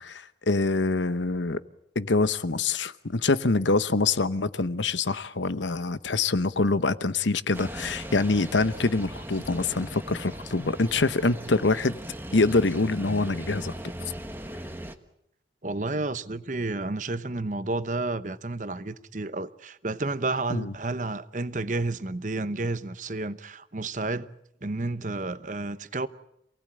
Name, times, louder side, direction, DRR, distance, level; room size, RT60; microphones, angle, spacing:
voice 1, 0.0-1.6 1.9-12.0 12.3-13.7 20.5-20.7, left 3 dB, 85° left, 1.0 m, -25 dB
sound 1, 7.5-14.9, right 1 dB, 10° right, 1.3 m, -38 dB
voice 2, 15.6-24.3 24.6-26.1, right 2 dB, 45° right, 0.9 m, -31 dB
27.5 x 18.5 x 8.7 m
head